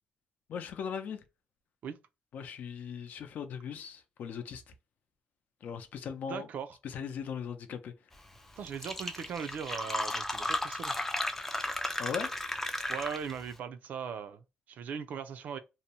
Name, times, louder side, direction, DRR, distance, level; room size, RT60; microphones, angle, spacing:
voice 1, 0.5-1.2 2.3-4.7 5.6-6.5 6.8-7.9 12.0-12.3, left 7 dB, 65° left, 0.5 m, -39 dB
voice 2, 6.3-6.7 8.6-11.0 12.9-15.6, right 7 dB, 60° right, 0.4 m, -39 dB
Fill (with liquid), 8.4-8.5 8.7-13.4, left 1 dB, 10° left, 0.4 m, -34 dB
2.7 x 2.1 x 2.8 m
cardioid pair, 135°, 3 cm